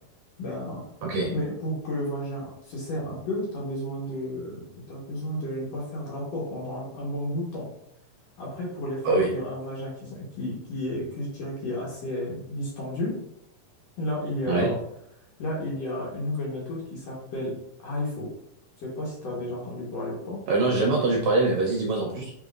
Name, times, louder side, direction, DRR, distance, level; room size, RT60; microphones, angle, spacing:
voice 1, 0.4-0.9 1.3-7.7 8.4-13.1 14.0-14.8 15.4-17.5 17.8-18.3 18.8-20.4, left 1 dB, 65° left, -4 dB, 2.0 m, -32 dB
voice 2, 1.0-1.3 9.0-9.3 14.5-14.7 20.5-22.3, right 3 dB, 75° right, -1 dB, 1.7 m, -23 dB
5.1 x 4.1 x 2.4 m, 0.79 s
omnidirectional pair, 3.7 m